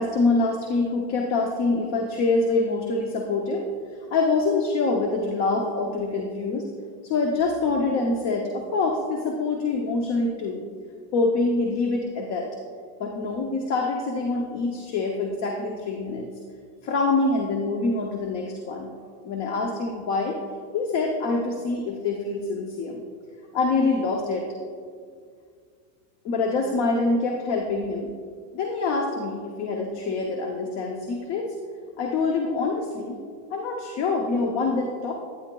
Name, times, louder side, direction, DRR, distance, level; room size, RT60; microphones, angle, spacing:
voice 1, 0.0-3.7 4.1-6.7 7.0-10.6 11.1-12.5 13.0-16.3 16.8-18.9 19.2-20.4 20.7-23.0 23.5-24.5 26.2-28.1 28.5-31.6 32.0-33.2 33.5-35.1, left 3 dB, 35° left, 1 dB, 0.6 m, -25 dB
11.0 x 9.3 x 2.2 m, 2.1 s
supercardioid pair, 165°, 48 cm